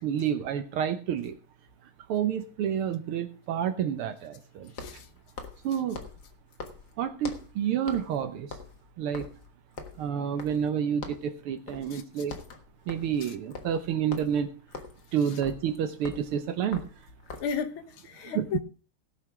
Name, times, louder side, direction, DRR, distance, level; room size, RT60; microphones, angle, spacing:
voice 1, 0.0-1.3 2.1-4.7 5.6-6.0 7.0-8.5 9.0-9.3 10.0-12.3 12.9-14.5 15.1-16.8 18.4-18.6, right 8 dB, 80° right, 1.8 m, -29 dB
sound 1, 1.4-1.5 4.7-7.6 7.9-8.2 8.4-10.8 11.0-11.3 11.7-11.9 12.2-17.6, left 4 dB, 50° left, 1.9 m, -43 dB
voice 2, 4.7-5.1 11.9-12.0 13.2-13.3 17.4-18.6, left 7 dB, 75° left, 1.9 m, -34 dB
17.0 x 5.8 x 5.9 m
omnidirectional pair, 2.4 m